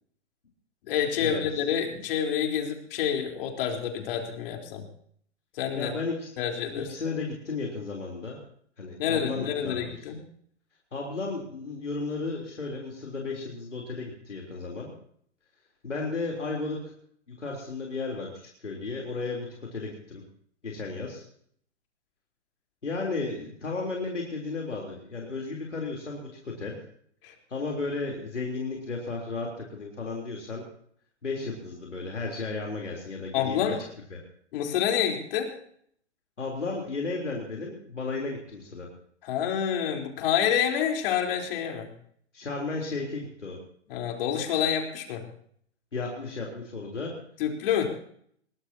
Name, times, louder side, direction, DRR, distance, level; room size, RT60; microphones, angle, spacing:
voice 1, 0.9-4.8 5.5-5.9 6.4-6.9 9.0-10.2 27.2-27.3 33.3-33.8 34.5-35.5 39.2-41.9 43.9-45.3 47.4-47.9, left 8 dB, 50° left, 2 dB, 4.1 m, -28 dB
voice 2, 5.8-6.3 6.7-8.4 8.8-10.1 10.9-14.9 15.8-16.8 17.3-20.2 20.6-21.2 22.8-26.8 27.5-30.6 31.2-33.6 34.1-34.2 36.4-38.9 42.3-43.6 45.9-47.1, left 3 dB, 90° left, -1 dB, 3.8 m, -34 dB
22.5 x 18.5 x 2.9 m, 0.63 s
hypercardioid pair, 120°, 35 cm